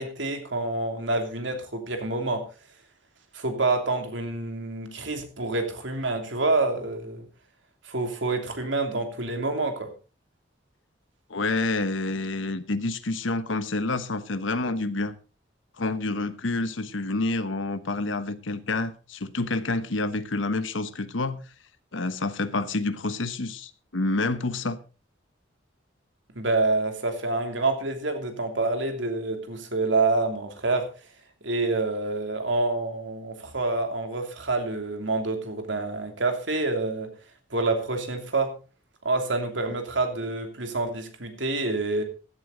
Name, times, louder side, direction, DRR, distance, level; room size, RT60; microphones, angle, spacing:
voice 1, 0.0-2.5 3.3-7.2 7.8-9.9 26.4-30.9 31.4-37.1 37.5-38.5 39.0-42.0, right 3 dB, 70° right, 2.9 m, -27 dB
voice 2, 11.3-15.1 15.8-21.4 21.9-24.8, left 2 dB, 80° left, 1.2 m, -28 dB
15.5 x 11.5 x 3.9 m
head